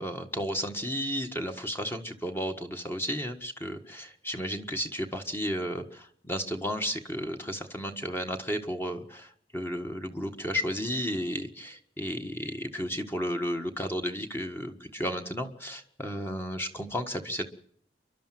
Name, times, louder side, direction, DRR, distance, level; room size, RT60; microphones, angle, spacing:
voice 1, 0.0-17.5, equal, 15° left, 5 dB, 1.6 m, -33 dB
29.0 x 12.0 x 7.6 m, 0.63 s
head